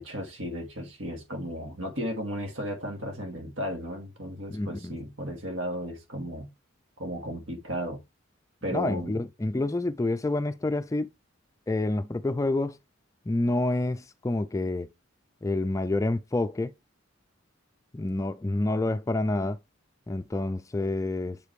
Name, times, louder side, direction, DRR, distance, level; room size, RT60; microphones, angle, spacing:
voice 1, 0.0-6.5 7.0-8.0 8.6-9.2, equal, 80° right, 2.2 m, -34 dB
voice 2, 4.5-5.0 8.7-11.1 11.7-12.8 13.3-14.9 15.4-16.7 17.9-19.6 20.1-21.4, left 2 dB, 15° left, 0.3 m, -28 dB
7.3 x 5.0 x 3.2 m
head